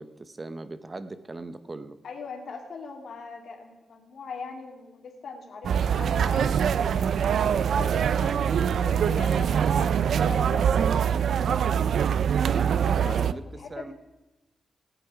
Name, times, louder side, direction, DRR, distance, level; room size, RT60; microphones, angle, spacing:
voice 1, 0.0-2.0 12.5-13.4 13.7-13.9, right 2 dB, 25° right, 12 dB, 0.8 m, -38 dB
voice 2, 2.0-7.1 7.5-12.3 12.7-13.9, left 4 dB, 65° left, 2 dB, 2.3 m, -41 dB
sound 1, 5.6-13.3, right 8 dB, 75° right, 0.4 m, -23 dB
18.0 x 8.2 x 4.9 m, 0.99 s
wide cardioid pair, 130°, 0 cm